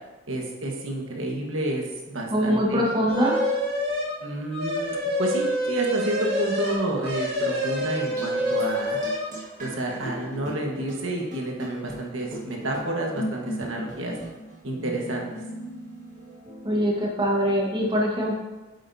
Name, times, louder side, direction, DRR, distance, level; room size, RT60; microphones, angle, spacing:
voice 1, 0.3-2.9 4.2-9.0 9.6-14.1 14.6-15.3, right 1 dB, 85° right, 0 dB, 1.5 m, -30 dB
voice 2, 2.3-3.4 16.6-18.4, equal, 25° right, -2 dB, 1.4 m, -23 dB
sound 1, 3.1-4.2 4.5-9.3, equal, 55° right, 2.1 m, -27 dB
sound 2, 7.8-17.2, equal, 40° right, 1.9 m, -38 dB
8.5 x 8.0 x 2.8 m, 1.1 s
head